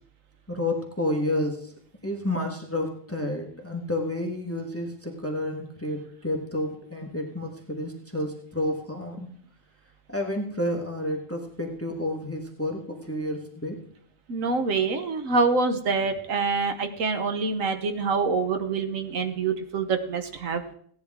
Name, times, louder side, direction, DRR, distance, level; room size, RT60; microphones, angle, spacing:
voice 1, 0.5-1.7 2.0-9.3 10.1-13.8, left 1 dB, 10° left, 2 dB, 1.3 m, -30 dB
voice 2, 14.3-20.7, right 4 dB, 80° right, 8 dB, 1.4 m, -26 dB
16.5 x 10.0 x 3.6 m, 0.63 s
omnidirectional pair, 1.4 m